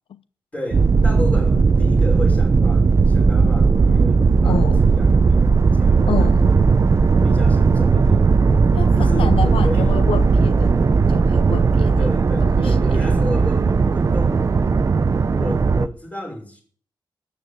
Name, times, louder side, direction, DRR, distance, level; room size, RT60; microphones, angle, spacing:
voice 1, 0.5-6.6 7.2-8.3 9.0-10.0 12.0-14.7 15.4-16.6, left 1 dB, 15° left, 5.6 m, -33 dB
sound 1, 0.7-15.9, right 4 dB, 35° right, 0.6 m, -16 dB
voice 2, 4.4-4.8 6.1-6.5 8.7-10.7 11.1-12.1 12.5-13.1, left 8 dB, 80° left, 0.6 m, -29 dB
13.0 x 8.6 x 8.1 m
wide cardioid pair, 175°, 9 cm